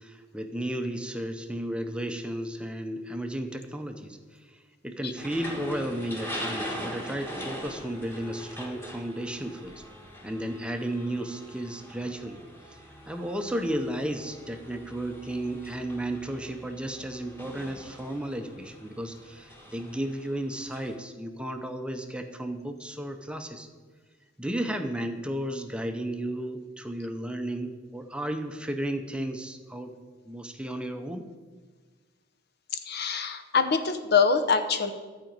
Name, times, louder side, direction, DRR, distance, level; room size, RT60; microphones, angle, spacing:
voice 1, 0.0-4.2 4.5-9.8 10.2-12.4 12.7-23.7 24.4-29.9 30.3-31.2, right 1 dB, 5° right, 6 dB, 0.7 m, -33 dB
sound 1, 5.2-21.0, equal, 10° left, 1.6 m, -42 dB
voice 2, 32.9-34.9, left 5 dB, 60° left, 8 dB, 0.9 m, -24 dB
12.0 x 5.1 x 8.8 m, 1.4 s
head